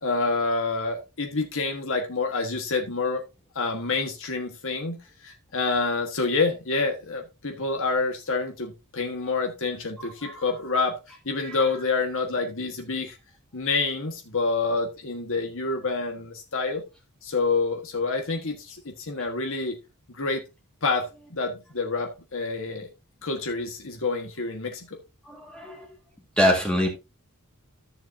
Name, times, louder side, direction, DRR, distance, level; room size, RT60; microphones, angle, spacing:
voice 1, 0.0-3.2 3.5-13.2 13.5-16.8 17.2-19.8 20.1-20.4 20.8-22.9 23.2-25.0, left 3 dB, 60° left, 3 dB, 1.4 m, -28 dB
voice 2, 25.3-25.8 26.4-26.9, equal, 5° left, -1 dB, 1.8 m, -24 dB
13.5 x 6.9 x 2.7 m, 0.26 s
head